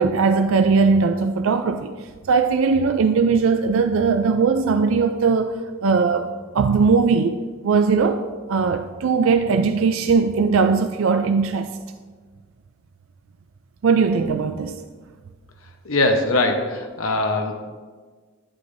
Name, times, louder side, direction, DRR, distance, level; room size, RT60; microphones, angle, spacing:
voice 1, 0.0-1.9 2.3-5.5 5.8-6.3 6.5-8.2 8.5-11.7 13.8-14.8, right 5 dB, 65° right, 8 dB, 0.4 m, -19 dB
voice 2, 15.8-17.5, left 2 dB, 70° left, 4 dB, 0.9 m, -21 dB
11.0 x 9.7 x 2.6 m, 1.5 s
head